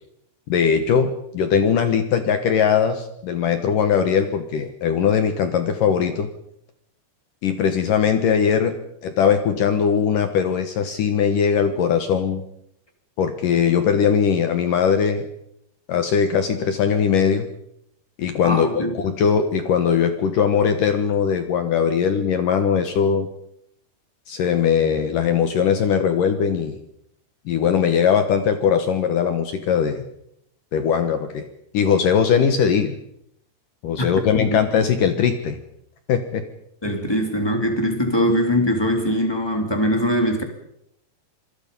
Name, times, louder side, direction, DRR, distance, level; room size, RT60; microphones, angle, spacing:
voice 1, 0.5-6.3 7.4-8.7 9.0-12.4 13.2-15.3 15.9-17.5 18.2-23.3 24.3-26.8 27.5-30.0 30.7-31.5 31.7-33.0 33.8-35.6 36.1-36.4, left 7 dB, 65° left, 8 dB, 2.2 m, -20 dB
voice 2, 18.4-19.0 34.3-34.6 36.8-40.4, equal, 5° left, 4 dB, 2.1 m, -22 dB
27.0 x 21.5 x 5.5 m, 0.74 s
omnidirectional pair, 5.4 m